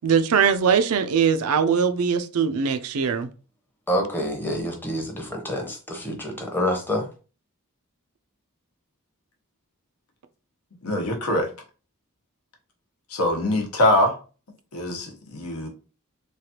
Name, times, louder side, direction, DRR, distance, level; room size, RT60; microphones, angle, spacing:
voice 1, 0.0-3.3, right 6 dB, 75° right, 0.4 m, -21 dB
voice 2, 3.9-7.1, equal, 10° left, 0.7 m, -27 dB
voice 3, 10.8-11.5 13.1-14.2 14.7-15.7, left 1 dB, 85° left, 0.9 m, -23 dB
3.2 x 2.4 x 2.8 m
head